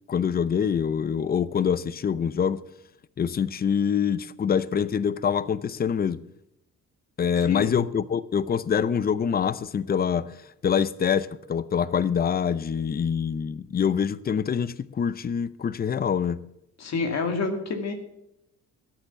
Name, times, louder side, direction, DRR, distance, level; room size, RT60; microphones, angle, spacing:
voice 1, 0.1-2.6 3.2-6.2 7.2-10.3 10.6-16.4, left 7 dB, 30° left, 0.6 m, -25 dB
voice 2, 7.4-7.9 16.8-17.9, left 4 dB, 60° left, 2.2 m, -28 dB
13.0 x 9.1 x 6.9 m
cardioid pair, 90°, 30 cm